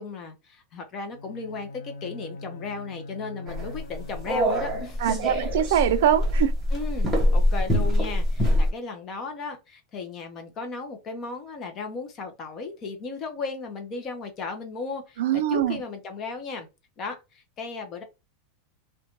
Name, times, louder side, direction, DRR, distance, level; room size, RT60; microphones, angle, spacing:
voice 1, 0.0-5.5 6.7-16.7 17.0-18.0, left 4 dB, 25° left, 0.5 m, -36 dB
Bowed string instrument, 1.1-5.3, left 2 dB, 80° left, 0.4 m, -41 dB
sound 1, 3.5-8.7, left 1 dB, 10° right, 0.8 m, -24 dB
voice 2, 5.0-6.5 15.2-15.8, right 10 dB, 65° right, 0.3 m, -23 dB
2.5 x 2.1 x 2.8 m
supercardioid pair, 180°, 0 cm